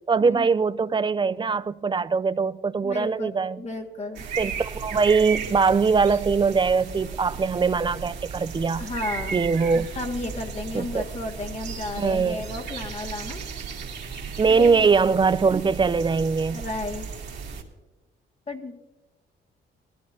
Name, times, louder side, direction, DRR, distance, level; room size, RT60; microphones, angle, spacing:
voice 1, 0.1-3.6 4.4-8.8 9.3-9.9 10.7-11.0 12.0-12.4 14.4-16.6, right 5 dB, 25° right, 0.5 m, -22 dB
voice 2, 2.8-3.3 3.6-4.3 8.7-9.4 10.0-13.4 14.5-14.9 16.5-17.1 18.5-18.7, left 2 dB, 35° left, 1.8 m, -33 dB
sound 1, 4.1-17.6, right 6 dB, 60° right, 2.4 m, -35 dB
20.0 x 13.5 x 2.7 m
cardioid pair, 90°, 20 cm